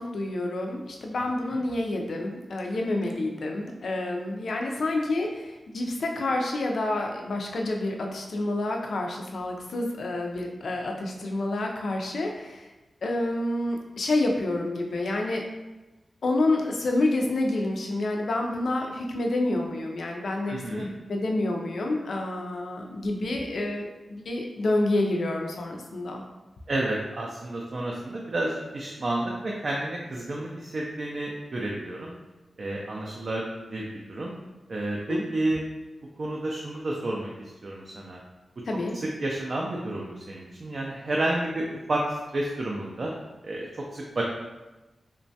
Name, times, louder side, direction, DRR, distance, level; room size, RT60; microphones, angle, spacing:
voice 1, 0.0-12.7 13.0-15.4 16.2-26.2 35.1-35.2 38.7-38.9, left 2 dB, 65° left, 1 dB, 0.4 m, -28 dB
voice 2, 20.5-20.9 26.7-32.1 32.6-34.3 34.7-35.6 36.2-38.2 39.2-43.1 43.4-44.2, right 1 dB, 45° right, -2 dB, 0.3 m, -30 dB
3.0 x 2.2 x 2.7 m, 1.1 s
wide cardioid pair, 160°, 0 cm